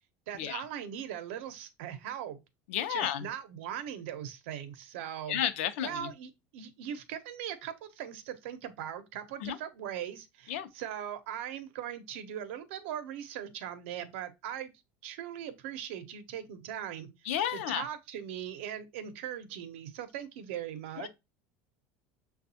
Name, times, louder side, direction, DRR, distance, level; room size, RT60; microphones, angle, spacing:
voice 1, 0.3-2.4 2.9-5.4 5.8-14.7 15.0-17.1 17.5-21.1, right 10 dB, 75° right, 0.7 m, -40 dB
voice 2, 2.7-3.3 5.3-6.1 9.4-9.6 10.5-10.7 17.3-17.8 21.0-21.1, left 10 dB, 85° left, 0.5 m, -32 dB
6.8 x 2.3 x 2.7 m
cardioid pair, 175°, 7 cm